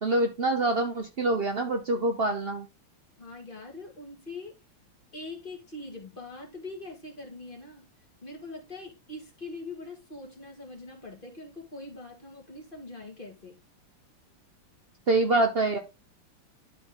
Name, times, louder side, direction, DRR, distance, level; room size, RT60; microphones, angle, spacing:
voice 1, 0.0-2.7 15.1-15.8, right 2 dB, 85° right, 0.5 m, -25 dB
voice 2, 3.2-4.6 5.1-7.9 8.2-13.6, left 2 dB, 25° left, 2.2 m, -42 dB
11.5 x 4.1 x 3.7 m
omnidirectional pair, 2.4 m